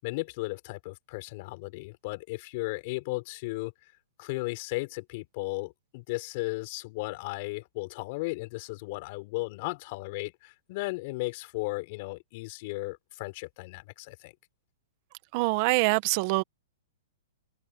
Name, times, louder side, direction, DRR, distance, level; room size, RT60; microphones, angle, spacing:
voice 1, 0.0-3.7 4.2-14.3, left 24 dB, 45° left, 6.2 m, -35 dB
voice 2, 15.3-16.4, right 23 dB, 45° right, 1.5 m, -24 dB
open air
hypercardioid pair, 135°, 0 cm